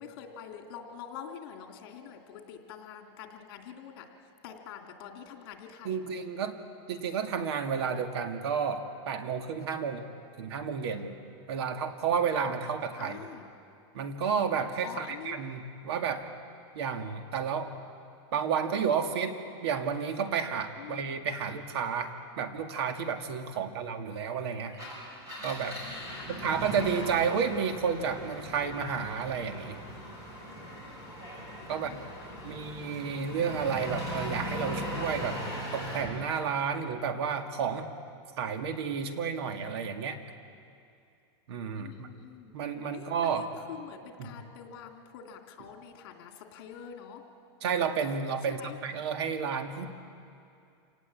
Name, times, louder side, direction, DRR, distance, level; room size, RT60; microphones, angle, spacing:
voice 1, 0.0-4.1 4.4-6.3 12.9-13.5 14.8-15.4 20.8-21.2 23.5-23.8 25.8-26.7 31.7-32.6 41.7-42.5 42.9-47.2 48.5-48.8, left 8 dB, 55° left, 4 dB, 3.0 m, -46 dB
voice 2, 5.8-6.6 6.9-10.1 10.4-11.1 11.5-13.3 13.9-16.3 16.7-17.7 18.3-19.4 19.6-24.8 25.4-25.8 26.3-29.8 31.7-31.9 32.4-35.4 35.7-37.9 38.4-40.2 41.5-42.1 42.5-43.5 44.2-44.3 47.6-49.9, right 6 dB, 65° right, 6 dB, 2.1 m, -31 dB
Engine, 24.7-36.1, equal, 25° right, 6.8 m, -39 dB
27.5 x 18.5 x 8.5 m, 2.5 s
supercardioid pair, 160°, 14 cm